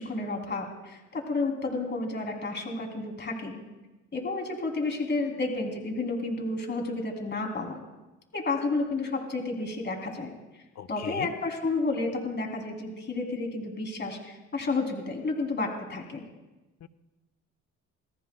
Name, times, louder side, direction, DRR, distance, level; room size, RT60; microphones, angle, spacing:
voice 1, 0.0-3.6 4.1-7.8 8.3-10.6 10.9-16.2, left 3 dB, 35° left, 1 dB, 3.3 m, -31 dB
voice 2, 10.8-11.3 16.8-16.9, left 10 dB, 60° left, 11 dB, 0.9 m, -38 dB
27.5 x 18.0 x 2.3 m, 1.1 s
cardioid pair, 90°, 30 cm